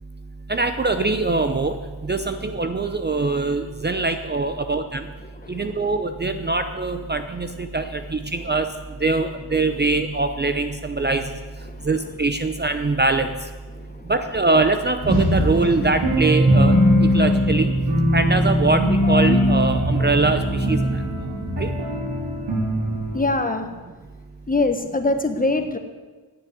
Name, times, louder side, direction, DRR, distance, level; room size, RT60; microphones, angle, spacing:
voice 1, 0.5-1.7 2.0-5.0 5.5-8.7 9.0-11.2 11.9-13.3 14.1-16.7 17.1-17.7 18.1-20.4 20.7-20.8 21.6-21.7, right 3 dB, 25° right, 8 dB, 0.7 m, -22 dB
sound 1, 15.0-23.3, equal, 80° right, 3.7 m, -20 dB
voice 2, 23.1-23.7 24.5-25.8, left 2 dB, 20° left, 7 dB, 1.2 m, -23 dB
9.9 x 7.7 x 9.2 m, 1.3 s
wide cardioid pair, 95°, 41 cm